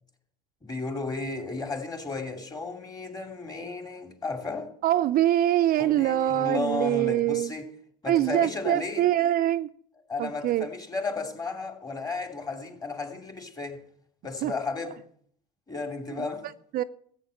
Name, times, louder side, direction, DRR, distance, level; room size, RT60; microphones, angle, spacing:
voice 1, 0.6-4.7 5.8-7.6 8.0-9.0 10.1-13.8 14.2-15.0 15.7-16.4, left 3 dB, 20° left, 2.7 m, -33 dB
voice 2, 4.8-7.5 8.1-9.7 10.2-10.7 14.4-14.5 16.1-16.3 16.7-16.8, right 12 dB, 45° right, 0.5 m, -24 dB
14.0 x 8.8 x 6.5 m
supercardioid pair, 95°, 20 cm